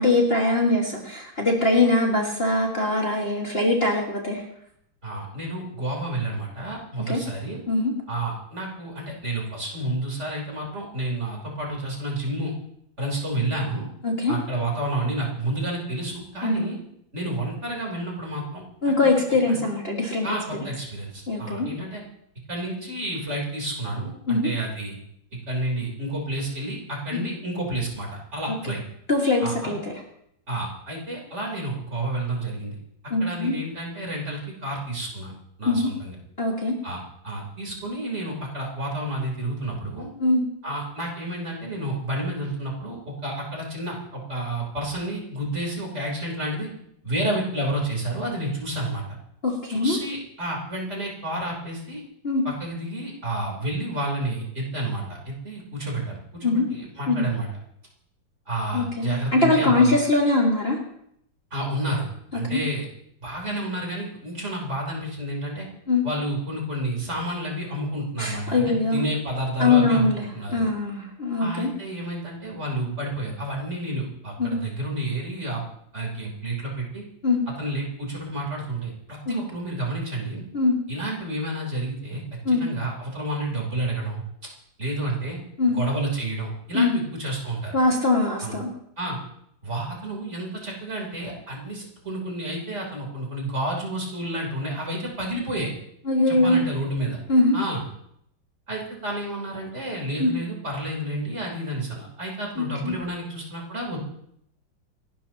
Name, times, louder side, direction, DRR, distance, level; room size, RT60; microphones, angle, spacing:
voice 1, 0.0-4.4 7.1-7.2 7.7-7.9 14.0-14.4 16.4-16.7 18.8-20.3 21.3-21.7 24.3-24.5 27.1-27.2 29.1-29.9 33.1-33.6 35.6-35.9 36.4-36.8 40.2-40.4 49.4-50.0 52.2-52.4 56.4-56.7 57.1-57.3 58.7-60.8 62.5-62.6 65.9-66.1 68.2-69.0 69.6-70.2 70.5-71.7 74.4-74.6 77.2-77.4 79.3-79.4 80.5-80.7 82.5-82.7 85.6-85.8 86.7-87.0 87.7-88.7 96.1-96.6 97.3-97.6 100.2-100.3 102.6-102.9, left 2 dB, 30° left, -2 dB, 2.2 m, -22 dB
voice 2, 5.0-7.6 8.1-12.5 13.0-13.9 14.3-16.8 17.1-19.6 20.2-22.0 22.5-25.0 25.5-28.8 29.4-29.7 30.5-32.7 33.2-35.3 35.6-36.1 36.8-37.0 37.2-40.1 40.6-46.7 47.0-49.0 49.7-52.0 52.4-57.5 58.5-60.0 61.5-62.1 62.3-62.9 63.2-65.7 66.0-70.7 71.4-75.6 75.9-77.0 77.6-80.4 80.9-82.2 82.5-84.2 84.8-85.4 85.7-87.7 88.4-88.5 89.0-89.2 89.6-95.7 96.3-97.2 97.5-97.8 98.7-104.0, right 1 dB, 35° right, -1 dB, 4.2 m, -30 dB
29.0 x 12.0 x 3.0 m, 0.72 s
omnidirectional pair, 2.2 m